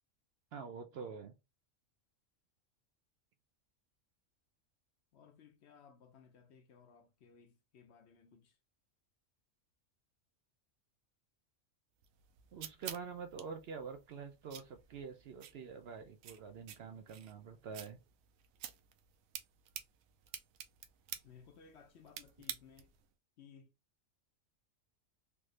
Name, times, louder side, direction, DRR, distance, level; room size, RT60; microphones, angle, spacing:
voice 1, 0.5-1.3 12.5-18.0, right 5 dB, 65° right, 0.7 m, -46 dB
voice 2, 5.1-8.6 21.2-22.9 23.4-23.7, left 6 dB, 65° left, 0.8 m, -60 dB
sound 1, 12.0-23.1, right 10 dB, 90° right, 1.0 m, -51 dB
3.5 x 3.1 x 2.4 m
omnidirectional pair, 1.4 m